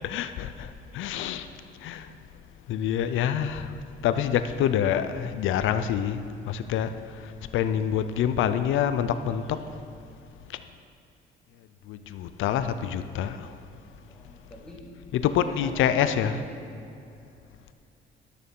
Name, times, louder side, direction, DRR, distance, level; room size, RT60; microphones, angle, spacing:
voice 1, 0.1-0.7 0.9-1.4 1.8-2.0 2.7-3.7 4.0-6.2 6.5-6.9 7.5-9.4 11.9-13.4 15.1-16.4, left 9 dB, 80° left, 11 dB, 0.6 m, -26 dB
voice 2, 14.1-14.9 15.3-17.0, equal, 5° left, -4 dB, 2.6 m, -46 dB
11.5 x 6.5 x 5.4 m, 2.7 s
cardioid pair, 90°, 20 cm